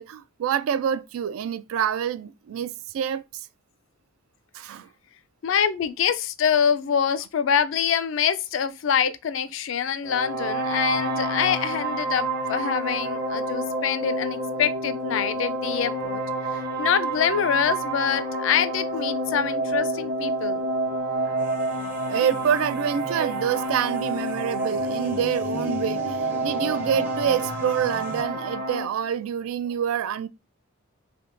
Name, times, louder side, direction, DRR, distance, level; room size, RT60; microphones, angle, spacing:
voice 1, 0.0-3.4 4.5-4.9 22.1-30.3, right 8 dB, 85° right, 0.3 m, -27 dB
voice 2, 5.4-16.2 16.5-20.7, left 8 dB, 65° left, 0.4 m, -25 dB
sound 1, 10.0-28.9, right 2 dB, 50° right, 0.7 m, -28 dB
sound 2, 21.4-28.2, right 1 dB, 10° right, 0.5 m, -41 dB
3.4 x 2.8 x 2.5 m
head